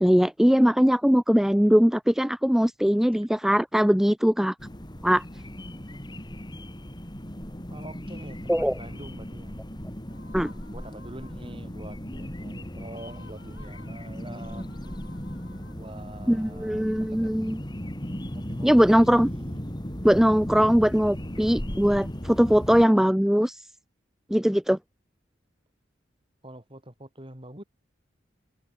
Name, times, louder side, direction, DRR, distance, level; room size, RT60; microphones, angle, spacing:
voice 1, 0.0-4.5 5.0-5.2 8.5-8.7 10.3-10.5 16.3-17.6 18.6-19.3 20.0-23.6 24.3-24.8, equal, ahead, 0.5 m, -21 dB
sound 1, 4.6-22.8, equal, 25° left, 3.1 m, -37 dB
voice 2, 7.7-9.5 10.7-14.9 15.5-17.6 18.3-19.6 26.4-27.6, right 1 dB, 30° right, 5.6 m, -45 dB
sound 2, 10.1-11.8 12.8-16.2, left 4 dB, 70° left, 5.3 m, -54 dB
head